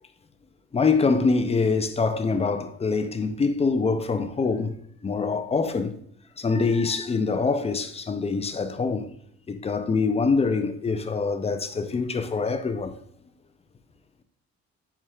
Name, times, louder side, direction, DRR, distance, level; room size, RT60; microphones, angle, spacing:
voice 1, 0.7-4.8 5.0-5.9 6.4-9.1 9.5-12.9, left 4 dB, 20° left, 0.4 m, -24 dB
4.6 x 4.4 x 2.3 m
cardioid pair, 90°, 30 cm